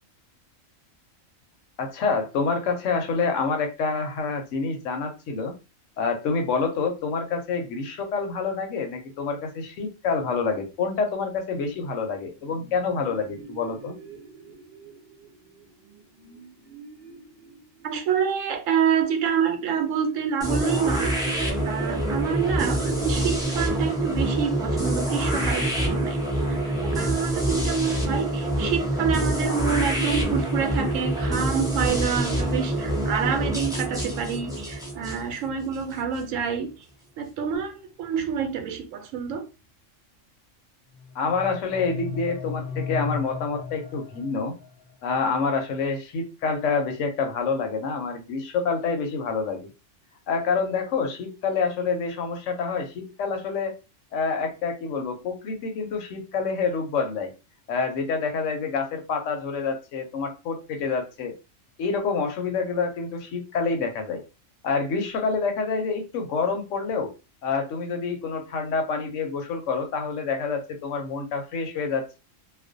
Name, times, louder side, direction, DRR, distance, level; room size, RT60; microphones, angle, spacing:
voice 1, 1.8-5.5 6.0-13.9 41.1-44.5 45.0-49.7 50.3-53.7 54.1-57.3 57.7-61.3 61.8-64.2 64.6-67.1 67.4-72.2, left 4 dB, 75° left, 0.9 m, -27 dB
sound 1, 12.3-26.0, right 4 dB, 55° right, 0.6 m, -43 dB
voice 2, 17.8-26.2 26.5-36.7 37.2-39.5, right 7 dB, 80° right, 0.9 m, -27 dB
sound 2, 20.4-36.2, right 1 dB, 5° right, 0.4 m, -26 dB
sound 3, 40.9-44.9, left 5 dB, 55° left, 0.7 m, -35 dB
2.4 x 2.1 x 2.5 m
omnidirectional pair, 1.3 m